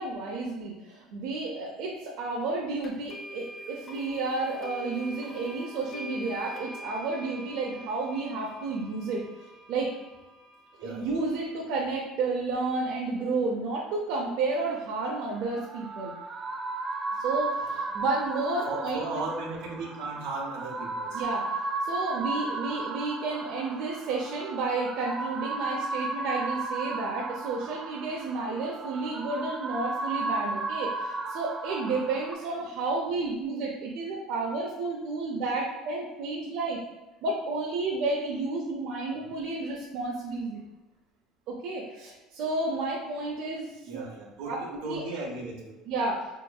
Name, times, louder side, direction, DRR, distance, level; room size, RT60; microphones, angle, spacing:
voice 1, 0.0-9.2 9.7-9.9 10.8-16.1 17.2-19.2 21.1-36.8 37.2-40.6 41.5-44.1 44.4-44.6 44.8-45.0 45.9-46.3, right 3 dB, 70° right, -3 dB, 0.6 m, -31 dB
sound 1, 2.8-11.7, equal, 35° left, 0.6 m, -45 dB
voice 2, 10.8-11.2 17.7-17.8 18.7-21.2 32.4-32.5 43.8-45.7, right 3 dB, 85° right, -1 dB, 0.9 m, -36 dB
sound 2, 15.3-32.3, right 3 dB, 25° right, 0.3 m, -34 dB
4.3 x 2.9 x 2.3 m, 1.1 s
cardioid pair, 145°, 0 cm